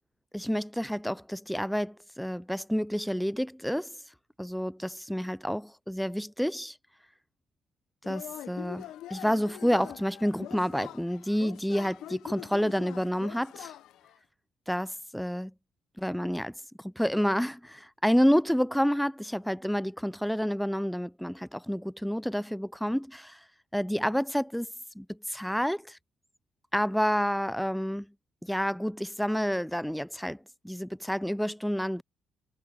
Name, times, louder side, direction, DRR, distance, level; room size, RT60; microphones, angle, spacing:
voice 1, 0.3-4.0 4.4-6.8 8.1-13.7 14.7-15.5 16.0-23.4 23.7-24.7 25.0-26.0 26.7-28.1 28.4-30.4 30.6-32.0, equal, ahead, 0.3 m, -29 dB
Yell / Cheering, 8.0-14.2, left 13 dB, 85° left, 0.7 m, -44 dB
cardioid pair, 90°, 0 cm